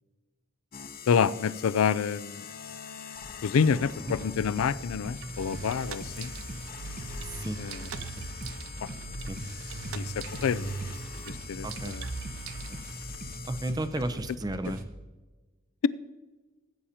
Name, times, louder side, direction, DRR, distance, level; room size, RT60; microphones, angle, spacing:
sound 1, 0.7-14.1, left 7 dB, 45° left, 0.7 m, -44 dB
voice 1, 1.1-2.4 3.4-6.3 7.6-7.8 8.8-8.9 9.9-10.7 11.3-12.0, left 6 dB, 80° left, 18 dB, 0.4 m, -28 dB
sound 2, 4.1-14.9, right 1 dB, 40° right, 0.9 m, -42 dB
sound 3, 5.2-13.2, right 3 dB, 85° right, 0.7 m, -40 dB
voice 2, 7.2-7.6 8.2-8.3 9.3-9.4 11.6-12.0 12.7-12.8 13.5-14.8, right 1 dB, 20° right, 11 dB, 0.5 m, -33 dB
16.0 x 8.7 x 2.8 m, 1.3 s
head